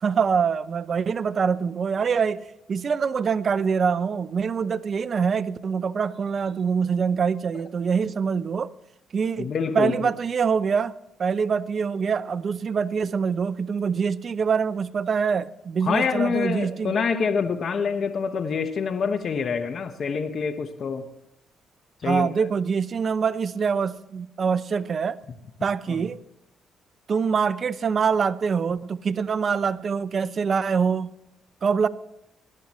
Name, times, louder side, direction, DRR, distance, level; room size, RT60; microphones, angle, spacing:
voice 1, 0.0-8.7 9.1-10.9 11.2-16.9 22.0-25.2 25.6-26.2 27.1-31.1 31.6-31.9, right 6 dB, 45° right, 0.6 m, -24 dB
voice 2, 9.4-10.0 15.8-21.1 22.0-22.3 25.9-26.0, left 5 dB, 55° left, 1.2 m, -26 dB
18.5 x 11.5 x 3.1 m
cardioid pair, 90°, 0 cm